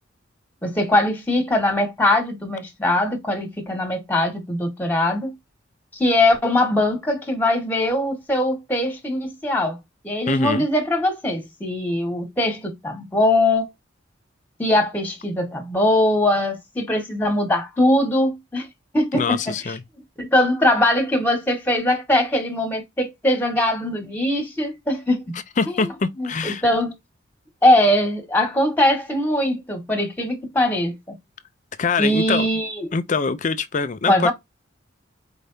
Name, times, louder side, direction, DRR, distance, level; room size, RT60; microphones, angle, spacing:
voice 1, 0.6-5.3 5.9-9.8 10.0-13.7 14.6-18.7 18.9-19.5 20.2-25.3 25.7-25.8 26.2-26.9 27.6-30.9 32.0-32.9 34.1-34.3, left 1 dB, 10° left, 1.4 m, -21 dB
voice 2, 10.3-10.7 19.1-19.8 25.6-26.6 31.8-32.5 32.9-34.3, left 4 dB, 40° left, 0.5 m, -24 dB
4.7 x 3.3 x 2.7 m
head